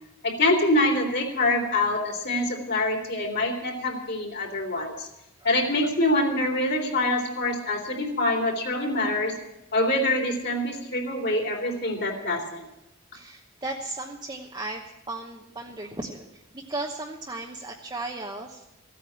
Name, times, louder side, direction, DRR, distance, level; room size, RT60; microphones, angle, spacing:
voice 1, 0.2-5.1 5.4-9.3 9.7-12.7, left 1 dB, 55° left, 1 dB, 3.5 m, -25 dB
voice 2, 13.1-16.3 16.5-18.6, right 2 dB, 20° right, 0 dB, 1.0 m, -35 dB
15.5 x 9.3 x 8.7 m, 0.91 s
head